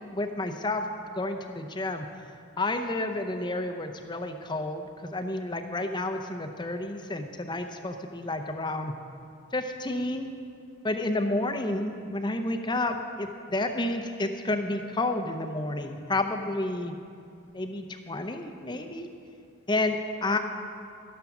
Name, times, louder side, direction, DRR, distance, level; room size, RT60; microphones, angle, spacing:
voice 1, 0.0-2.1 2.6-9.0 9.5-10.3 10.8-16.9 17.5-19.1 19.7-20.4, left 2 dB, 20° left, 6 dB, 0.6 m, -30 dB
13.5 x 10.5 x 6.0 m, 2.5 s
head